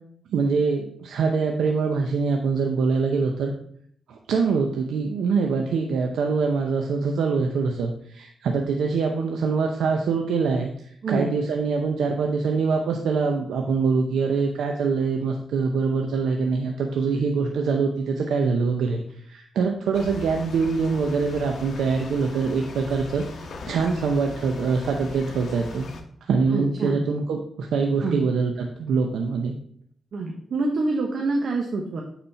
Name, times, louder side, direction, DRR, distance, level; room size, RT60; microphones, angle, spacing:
voice 1, 0.3-3.5 4.1-23.2 23.6-25.9 26.2-29.5, right 4 dB, 85° right, 3 dB, 0.7 m, -24 dB
voice 2, 11.0-11.3 26.5-27.0 28.0-28.2 30.1-32.0, right 2 dB, 65° right, 1 dB, 1.1 m, -26 dB
sound 1, 19.9-26.0, left 3 dB, 65° left, 1.1 m, -39 dB
9.0 x 4.3 x 4.2 m, 0.64 s
cardioid pair, 65°, 0 cm